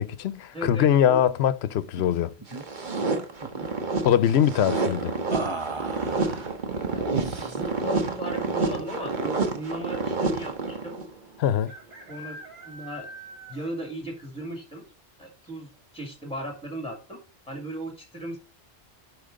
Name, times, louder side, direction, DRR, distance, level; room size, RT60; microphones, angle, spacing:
voice 1, 0.0-2.3 4.0-5.2 11.4-11.7, left 10 dB, 85° left, 0.9 m, -22 dB
voice 2, 0.5-1.2 2.5-2.6 6.9-7.1 7.4-11.0 12.1-12.4 12.6-13.1 13.5-14.8 15.2-17.2 17.5-18.4, right 1 dB, 5° left, 2.1 m, -36 dB
sound 1, 2.0-2.2 2.4-2.6 3.0-3.7 5.3-6.5 7.2-7.8, right 3 dB, 30° right, 0.9 m, -36 dB
sound 2, 2.5-11.1, right 3 dB, 50° right, 1.2 m, -29 dB
sound 3, 4.1-4.6 6.4-6.8 7.0-7.1 7.4-7.9 8.7-8.8 9.0-9.1 10.6-10.7 11.6-13.9 14.3-14.4 14.9-15.0 15.4-15.5, right 1 dB, 70° right, 2.2 m, -45 dB
10.5 x 4.9 x 3.7 m
omnidirectional pair, 1.1 m